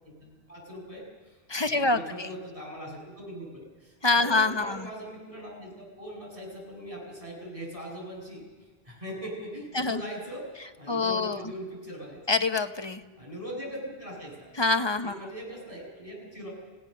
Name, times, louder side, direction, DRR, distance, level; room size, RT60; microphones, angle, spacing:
voice 1, 0.0-10.5 10.8-12.2 13.2-14.5 15.0-16.5, equal, 35° right, -2 dB, 7.3 m, -41 dB
voice 2, 1.5-2.3 4.0-4.9 9.7-10.0 10.9-11.5 12.3-13.0 14.6-15.1, left 3 dB, 25° left, 8 dB, 0.9 m, -25 dB
29.5 x 17.5 x 6.6 m, 1.3 s
omnidirectional pair, 1.0 m